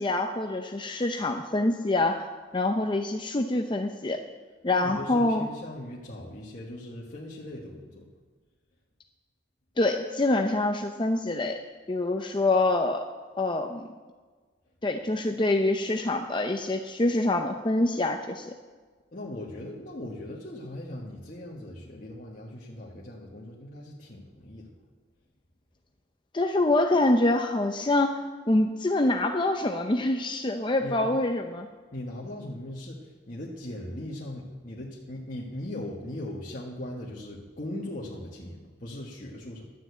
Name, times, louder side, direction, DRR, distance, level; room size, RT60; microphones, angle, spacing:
voice 1, 0.0-2.3 2.5-4.2 4.6-5.5 9.8-11.6 11.9-13.1 13.4-13.9 14.8-18.5 26.3-28.2 28.5-31.7, left 2 dB, 25° left, 4 dB, 0.6 m, -25 dB
voice 2, 4.7-8.1 19.1-24.7 30.8-31.1 31.9-39.6, left 1 dB, 45° left, -5 dB, 1.5 m, -39 dB
12.0 x 7.5 x 8.2 m, 1.4 s
head